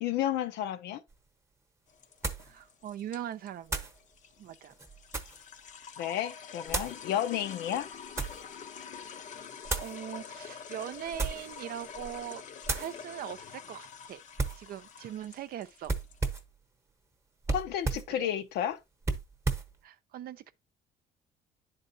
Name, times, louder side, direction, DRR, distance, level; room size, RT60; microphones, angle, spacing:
voice 1, 0.0-1.0 6.0-7.9 17.5-18.8, left 11 dB, 80° left, 0.7 m, -32 dB
sound 1, 1.1-1.2 2.2-2.5 3.7-4.0 4.7-5.5 6.7-7.0 7.8-8.4 9.7-10.0 11.1-11.5 12.0-12.2 12.6-12.9 14.4-14.7 15.9-16.5 17.4-18.1 19.0-19.7, right 3 dB, 15° right, 0.9 m, -33 dB
sound 2, 1.9-16.4, left 6 dB, 45° left, 0.7 m, -46 dB
voice 2, 2.4-3.9 4.4-4.7 9.8-12.4 12.7-14.2 14.5-15.9 18.1-18.3 19.8-20.5, right 10 dB, 60° right, 0.6 m, -41 dB
10.0 x 4.0 x 2.7 m
cardioid pair, 110°, 17 cm